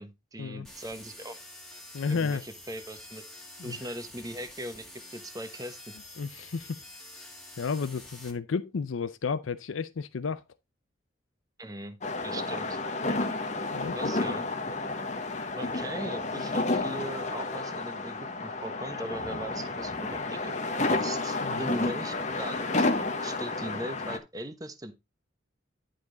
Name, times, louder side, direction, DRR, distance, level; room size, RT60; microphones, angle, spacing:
voice 1, 0.0-1.4 2.1-3.2 3.6-4.8 5.1-5.8 11.6-12.0 12.2-12.8 13.9-14.4 15.6-20.5 20.9-22.9 23.2-24.9, right 1 dB, 20° right, 1.0 m, -40 dB
sound 1, 0.6-8.3, left 1 dB, ahead, 1.7 m, -48 dB
voice 2, 1.9-2.4 3.6-3.8 6.2-6.8 7.2-7.3 7.6-10.4 13.7-14.0 21.4-21.7, left 5 dB, 90° left, 0.5 m, -32 dB
sound 2, 12.0-24.2, left 2 dB, 35° left, 1.0 m, -31 dB
11.0 x 5.1 x 3.8 m
head